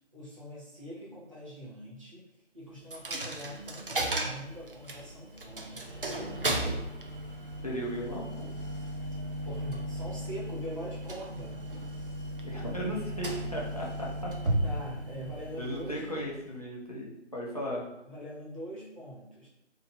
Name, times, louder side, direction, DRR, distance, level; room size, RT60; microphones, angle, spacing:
voice 1, 0.1-2.3 2.5-5.9 9.4-11.6 14.6-16.2 17.7-19.5, equal, 30° right, -6 dB, 0.8 m, -43 dB
Coin (dropping), 2.9-16.6, right 1 dB, 50° right, 0.5 m, -35 dB
voice 2, 7.6-8.5 12.4-14.3 15.6-17.8, equal, 30° left, -4 dB, 0.6 m, -36 dB
2.8 x 2.4 x 3.8 m, 0.87 s
figure-of-eight pair, 165°, 36 cm